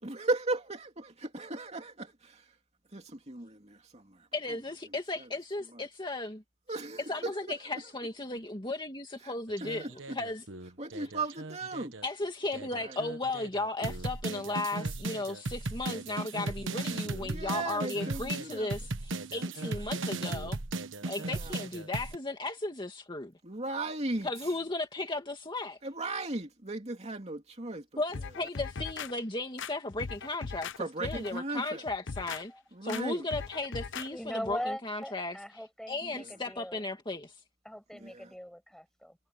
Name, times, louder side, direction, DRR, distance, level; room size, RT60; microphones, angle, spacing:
voice 1, 0.0-2.5 2.9-4.3 6.7-7.3 9.2-9.3 9.6-10.2 10.8-11.9 12.8-13.0 17.2-18.7 21.0-21.6 23.4-24.3 25.8-27.8 30.8-31.8 32.7-33.3 36.1-36.2 37.9-38.3, right 2 dB, 30° right, 2.8 m, -36 dB
voice 2, 4.3-6.4 7.1-10.4 12.0-20.6 21.1-23.3 24.2-25.8 28.0-32.5 32.8-35.4 35.9-37.3, left 2 dB, 25° left, 2.3 m, -35 dB
sound 1, 9.5-12.1 12.5-22.2, right 2 dB, 65° right, 1.3 m, -37 dB
sound 2, 28.1-29.1 29.6-30.8 31.0-31.4 31.9-32.4 32.9-33.0 33.3-34.1 34.4-34.6, left 5 dB, 60° left, 0.7 m, -39 dB
voice 3, 33.5-36.8 37.6-39.2, equal, ahead, 6.2 m, -41 dB
head